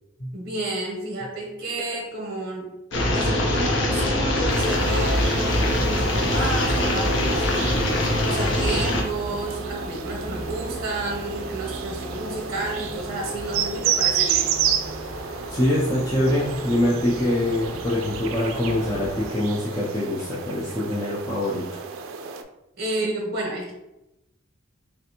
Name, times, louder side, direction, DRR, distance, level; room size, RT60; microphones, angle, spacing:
voice 1, 0.3-2.7 3.1-7.6 8.2-14.5 22.8-23.7, right 2 dB, 50° right, -1 dB, 0.7 m, -31 dB
sound 1, 2.9-9.0, left 1 dB, 60° left, 0.7 m, -22 dB
sound 2, 4.5-22.4, right 8 dB, 80° right, 0.3 m, -31 dB
sound 3, 7.9-19.3, right 1 dB, 40° left, 1.2 m, -37 dB
voice 2, 15.5-21.7, left 1 dB, 15° left, -7 dB, 0.4 m, -24 dB
3.3 x 2.5 x 2.8 m, 0.92 s
head